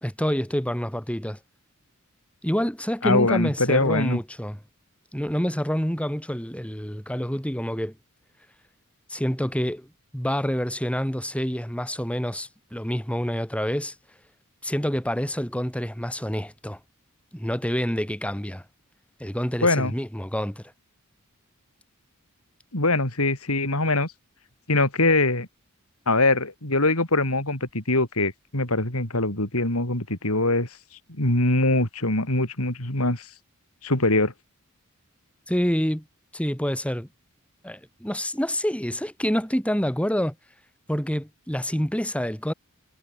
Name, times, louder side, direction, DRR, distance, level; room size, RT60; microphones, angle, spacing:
voice 1, 0.0-1.4 2.4-4.6 5.1-8.0 9.1-9.9 10.1-13.9 14.6-16.8 17.3-18.6 19.2-20.7 35.5-36.0 36.3-37.1 37.6-40.4 40.9-42.5, equal, 5° left, 4.6 m, -27 dB
voice 2, 3.0-4.2 19.6-19.9 22.7-24.1 24.7-25.5 26.1-30.7 31.1-33.3 33.8-34.3, left 2 dB, 90° left, 5.7 m, -23 dB
head